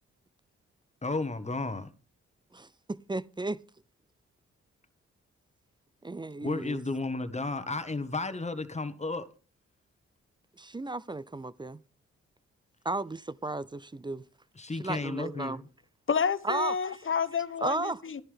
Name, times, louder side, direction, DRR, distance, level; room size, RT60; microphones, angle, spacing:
voice 1, 1.0-1.9 6.4-9.3 14.5-15.7, left 3 dB, 20° left, 1.4 m, -33 dB
voice 2, 2.5-3.6 6.0-6.8 10.6-11.8 12.8-14.2 14.8-15.6 16.4-17.0 17.6-18.0, right 2 dB, 15° right, 0.5 m, -34 dB
voice 3, 16.1-18.2, left 6 dB, 40° left, 0.9 m, -29 dB
13.0 x 11.0 x 3.4 m
supercardioid pair, 45°, 31 cm